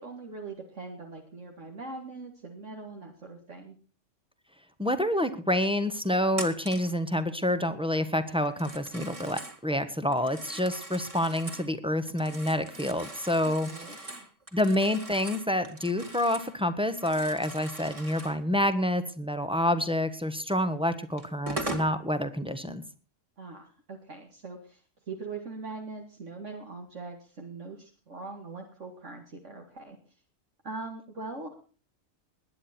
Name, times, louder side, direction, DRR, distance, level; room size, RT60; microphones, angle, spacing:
voice 1, 0.0-3.8 13.4-14.0 23.4-24.8 25.1-30.0 30.6-31.6, right 3 dB, 65° right, 2 dB, 2.4 m, -41 dB
voice 2, 4.8-13.7 14.0-14.2 14.5-22.8, left 1 dB, 5° right, 10 dB, 1.3 m, -28 dB
Telephone, 6.3-6.9 8.5-9.6 10.1-11.7 12.1-16.6 16.8-18.4 20.5-20.6 21.2-21.9, right 2 dB, 25° right, 2.2 m, -41 dB
20.5 x 9.9 x 4.4 m, 0.38 s
omnidirectional pair, 1.4 m